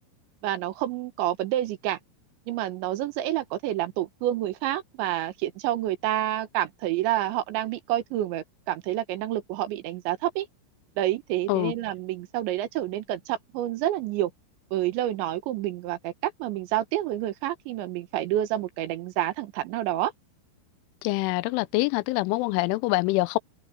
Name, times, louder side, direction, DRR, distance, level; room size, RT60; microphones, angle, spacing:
voice 1, 0.4-2.0 2.5-10.5 11.0-14.3 14.7-20.1, right 13 dB, 75° right, 3.4 m, -28 dB
voice 2, 21.0-23.4, left 21 dB, 85° left, 3.1 m, -25 dB
omnidirectional pair, 5.5 m